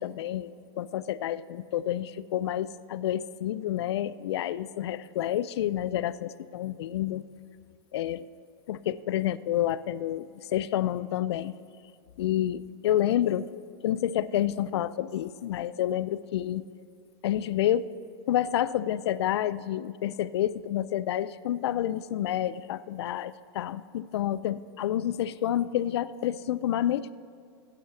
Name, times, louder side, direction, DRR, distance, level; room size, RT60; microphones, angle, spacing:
voice 1, 0.0-7.2 7.9-8.3 8.7-11.5 12.2-13.5 13.8-16.6 17.2-17.9 18.3-27.1, left 12 dB, 80° left, 17 dB, 0.4 m, -29 dB
9.0 x 7.8 x 6.9 m, 2.3 s
hypercardioid pair, 120°, 14 cm